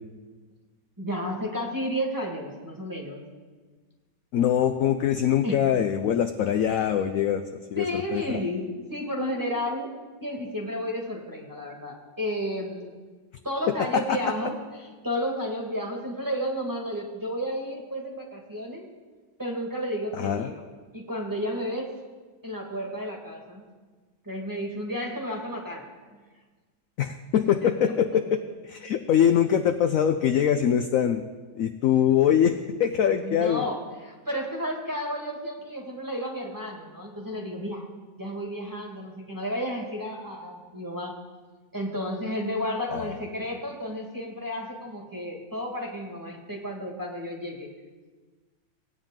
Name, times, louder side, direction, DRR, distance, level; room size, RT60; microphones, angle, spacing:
voice 1, 1.0-3.2 5.4-5.6 7.7-9.9 10.2-12.9 13.4-18.9 19.4-20.6 20.9-21.9 22.4-23.6 24.2-25.9 27.6-27.9 33.1-37.9 38.2-41.1 41.7-47.7, equal, 10° right, -2 dB, 1.5 m, -32 dB
voice 2, 4.3-7.8 8.1-8.4 13.7-14.2 20.2-20.5 27.0-31.2 31.6-33.6 42.9-43.1, left 9 dB, 70° left, 7 dB, 0.8 m, -23 dB
18.5 x 8.9 x 3.7 m, 1.4 s
omnidirectional pair, 1.9 m